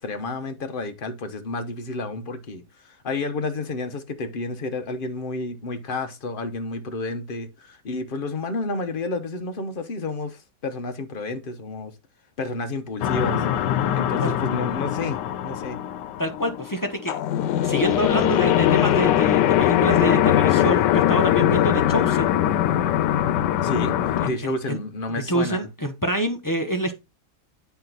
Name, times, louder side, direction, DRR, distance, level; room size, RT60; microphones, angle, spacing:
voice 1, 0.0-11.9 12.4-13.4 13.9-15.8 23.6-25.7, left 2 dB, 40° left, 0.9 m, -30 dB
sound 1, 13.0-24.3, left 11 dB, 90° left, 1.2 m, -21 dB
voice 2, 16.2-17.2 17.6-22.3 24.2-24.8 25.3-26.9, right 1 dB, 20° left, 0.5 m, -27 dB
8.3 x 4.5 x 4.0 m
omnidirectional pair, 1.8 m